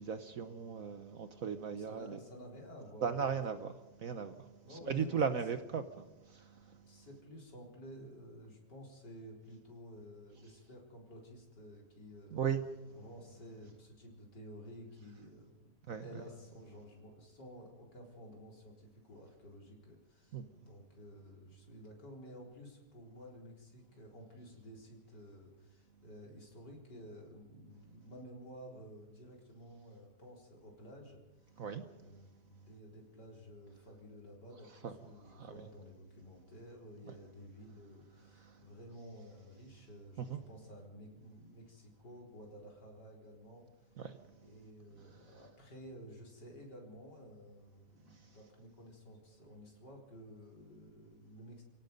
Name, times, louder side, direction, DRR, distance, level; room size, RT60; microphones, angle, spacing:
voice 1, 0.0-2.2 3.0-3.7 4.0-4.5 4.9-5.8 6.3-6.8 12.3-12.6 15.9-16.0 20.3-20.5 31.6-31.9 34.8-34.9 35.3-35.5 38.4-38.6 40.3-40.4 44.0-44.2, right 6 dB, 55° right, 1.1 m, -37 dB
voice 2, 1.7-3.2 4.6-5.3 6.8-12.5 12.9-15.7 16.0-31.6 31.9-43.7 44.4-51.6, equal, 65° left, 4.6 m, -53 dB
28.5 x 17.5 x 5.3 m
omnidirectional pair, 2.0 m